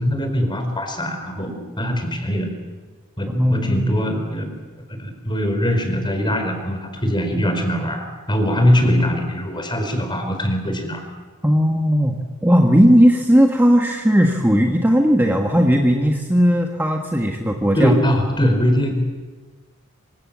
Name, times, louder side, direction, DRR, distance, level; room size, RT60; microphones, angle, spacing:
voice 1, 0.0-1.5 1.8-2.5 3.2-4.5 4.9-11.1 17.7-19.0, equal, 20° left, 5 dB, 4.6 m, -21 dB
voice 2, 3.3-3.8 11.4-18.0, equal, 10° right, 2 dB, 1.5 m, -17 dB
26.5 x 26.0 x 7.5 m, 1.4 s
head